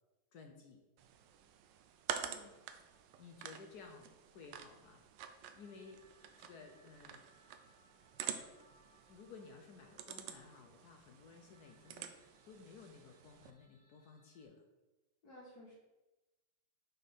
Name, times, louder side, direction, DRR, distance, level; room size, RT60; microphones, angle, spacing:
voice 1, 0.3-0.8 3.2-5.0 5.5-7.2 9.1-14.6, left 4 dB, 70° left, 3 dB, 0.9 m, -56 dB
sound 1, 1.0-13.5, right 9 dB, 75° right, 1.1 m, -48 dB
voice 2, 2.2-2.5 15.2-15.7, left 1 dB, 50° left, -5 dB, 1.6 m, -56 dB
sound 2, 2.5-14.5, equal, 40° right, 2.7 m, -72 dB
6.2 x 4.2 x 5.2 m, 1.1 s
omnidirectional pair, 2.3 m